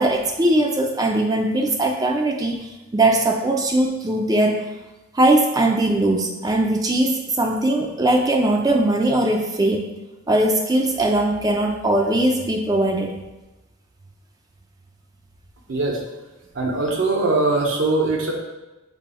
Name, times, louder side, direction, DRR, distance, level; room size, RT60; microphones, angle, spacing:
voice 1, 0.0-2.7 2.9-4.6 5.1-9.8 10.3-13.2, right 1 dB, 20° right, 2 dB, 0.4 m, -20 dB
voice 2, 15.7-16.0 16.5-18.3, right 2 dB, 60° right, 0 dB, 0.7 m, -21 dB
6.2 x 3.4 x 2.2 m, 1.0 s
head